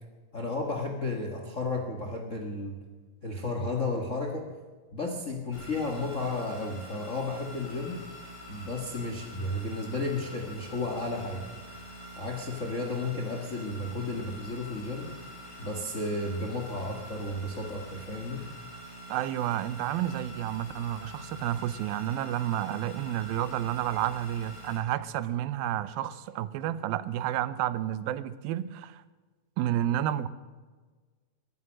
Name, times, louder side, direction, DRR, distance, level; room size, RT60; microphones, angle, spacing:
voice 1, 0.3-2.7 3.2-4.4 4.9-8.0 8.5-11.5 12.2-15.1 15.6-18.4, left 2 dB, 70° left, 2 dB, 0.7 m, -33 dB
sound 1, 5.5-24.8, equal, 50° left, 8.0 m, -45 dB
voice 2, 19.1-29.0 29.6-30.3, right 12 dB, 85° right, 15 dB, 2.5 m, -30 dB
22.5 x 9.5 x 6.4 m, 1.4 s
omnidirectional pair, 4.2 m